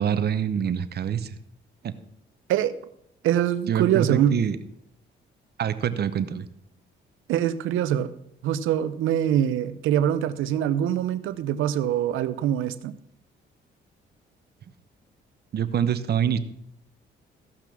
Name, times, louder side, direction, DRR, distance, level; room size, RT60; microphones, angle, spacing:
voice 1, 0.0-1.4 1.8-1.9 3.7-4.6 5.6-6.5 15.5-16.4, right 8 dB, 55° right, 13 dB, 0.9 m, -25 dB
voice 2, 3.2-4.4 7.3-8.1 8.4-12.9, right 10 dB, 85° right, 14 dB, 0.7 m, -24 dB
15.0 x 5.9 x 6.0 m, 0.73 s
cardioid pair, 90°, 20 cm